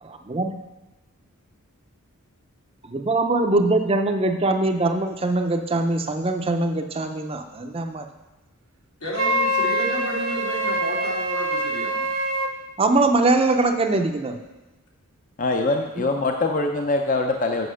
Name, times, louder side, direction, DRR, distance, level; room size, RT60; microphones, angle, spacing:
voice 1, 0.0-0.6 2.8-8.1 12.8-14.4 16.0-16.1, right 2 dB, 25° right, 5 dB, 0.5 m, -22 dB
voice 2, 9.0-12.1 15.6-15.8, equal, 90° left, -4 dB, 2.6 m, -32 dB
Wind instrument woodwind instrument, 9.1-12.5, right 1 dB, 65° right, 0.8 m, -24 dB
voice 3, 15.4-17.7, left 2 dB, 40° left, 3 dB, 0.6 m, -23 dB
7.8 x 5.9 x 6.3 m, 1.0 s
head